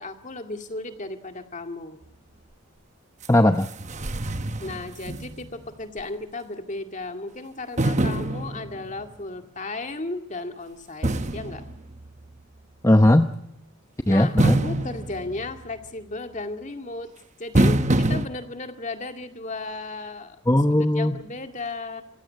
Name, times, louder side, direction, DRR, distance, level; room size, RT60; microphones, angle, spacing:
voice 1, 0.0-2.0 4.6-11.6 14.1-17.1 17.4-20.4 20.8-22.0, left 2 dB, 35° left, 6 dB, 2.1 m, -35 dB
sound 1, 3.2-3.3 3.6-5.7 6.0-6.1 7.8-9.1 11.0-12.4 14.4-15.9 17.5-18.3, right 1 dB, 30° right, 1.0 m, -25 dB
voice 2, 3.3-3.7 12.8-13.3 14.1-14.6 20.5-21.2, left 1 dB, 15° left, 7 dB, 0.8 m, -18 dB
26.5 x 16.0 x 8.5 m, 0.84 s
head